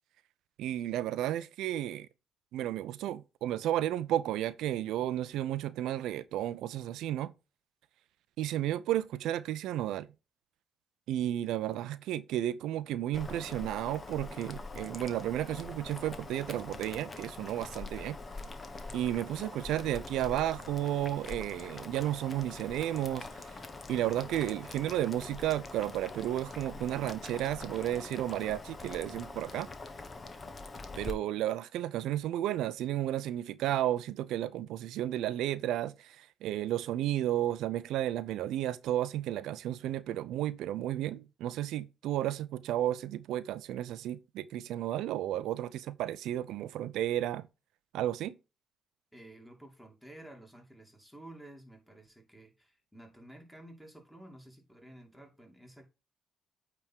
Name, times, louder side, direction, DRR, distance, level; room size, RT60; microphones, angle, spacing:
voice 1, 0.6-2.1 2.5-7.3 8.4-10.1 11.1-18.2 18.9-23.5 23.9-29.7 31.0-47.5 47.9-48.3, right 12 dB, 85° right, 0.5 m, -33 dB
Boiling, 13.1-31.1, left 3 dB, 35° left, 1.1 m, -44 dB
voice 2, 49.1-55.9, right 1 dB, ahead, 2.5 m, -52 dB
8.8 x 3.5 x 4.5 m
cardioid pair, 90°, 0 cm